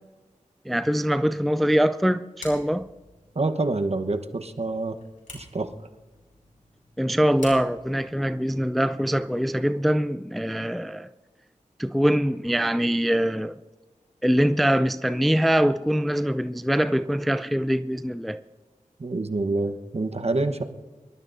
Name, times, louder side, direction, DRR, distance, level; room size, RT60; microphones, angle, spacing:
voice 1, 0.7-2.9 7.0-11.1 11.8-13.5 14.2-18.4, equal, ahead, 0.4 m, -23 dB
sound 1, 2.4-9.6, left 2 dB, 75° left, 5.3 m, -49 dB
voice 2, 3.3-5.0 5.3-5.7 19.0-20.6, right 2 dB, 50° right, 1.1 m, -27 dB
25.0 x 12.5 x 2.7 m
wide cardioid pair, 50°, 13 cm